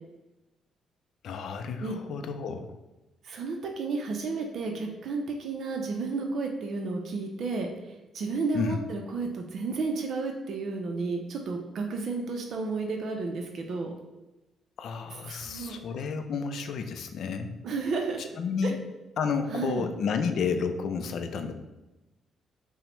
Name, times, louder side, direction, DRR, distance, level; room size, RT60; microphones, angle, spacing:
voice 1, 1.2-2.7 8.5-8.8 14.8-17.5 18.2-18.8 19.2-21.5, left 5 dB, 70° left, 7 dB, 0.4 m, -31 dB
voice 2, 3.2-7.7 8.1-13.9 15.3-15.8 17.6-18.2 18.6-18.7 19.5-19.9, right 4 dB, 65° right, 2 dB, 0.5 m, -32 dB
5.6 x 2.1 x 3.0 m, 1.0 s
cardioid pair, 90°, 0 cm